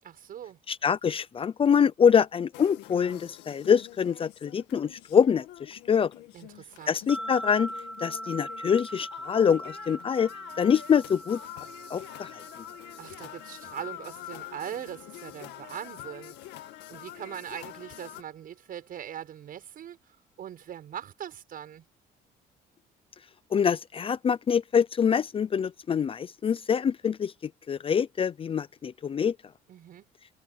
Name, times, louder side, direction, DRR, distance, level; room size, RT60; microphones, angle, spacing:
voice 1, 0.0-0.6 6.3-7.0 13.0-20.0 20.4-21.9 29.7-30.1, right 10 dB, 55° right, 7.3 m, -41 dB
voice 2, 0.7-6.1 6.9-7.7 8.0-10.3 10.6-11.4 11.9-12.4 23.5-27.3 27.7-29.4, left 7 dB, 35° left, 0.6 m, -25 dB
sound 1, 2.5-18.2, left 15 dB, 90° left, 2.1 m, -46 dB
sound 2, 7.1-16.4, right 1 dB, 5° right, 7.2 m, -42 dB
cardioid pair, 110°, 17 cm